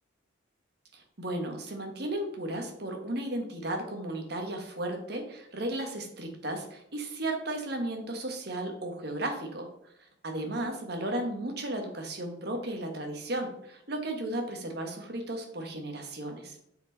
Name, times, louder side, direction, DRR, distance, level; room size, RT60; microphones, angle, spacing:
voice 1, 0.9-9.7 10.2-16.6, right 1 dB, 55° right, 3 dB, 1.5 m, -34 dB
7.3 x 4.6 x 4.1 m, 0.75 s
head